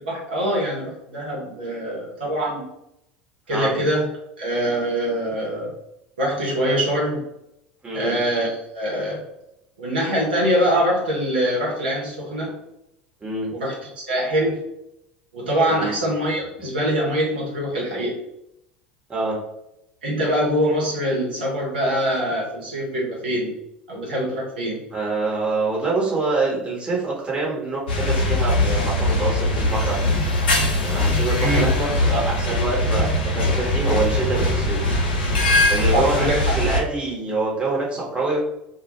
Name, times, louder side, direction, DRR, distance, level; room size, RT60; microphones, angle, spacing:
voice 1, 0.1-2.6 3.5-4.1 4.4-5.7 6.2-7.2 7.9-9.2 9.8-12.5 13.5-14.6 15.3-18.2 20.0-23.5 23.9-24.8 31.4-31.6 35.9-36.4, equal, 75° right, -5 dB, 0.7 m, -23 dB
voice 2, 7.8-8.2 13.2-13.5 15.7-15.9 16.6-16.7 19.1-19.4 24.9-30.2 30.8-34.9 35.7-36.3 36.5-38.4, right 3 dB, 20° right, -5 dB, 1.0 m, -25 dB
sound 1, 27.9-36.8, left 1 dB, 70° left, 0.5 m, -21 dB
2.1 x 2.1 x 2.9 m, 0.83 s
figure-of-eight pair, 70°, 5 cm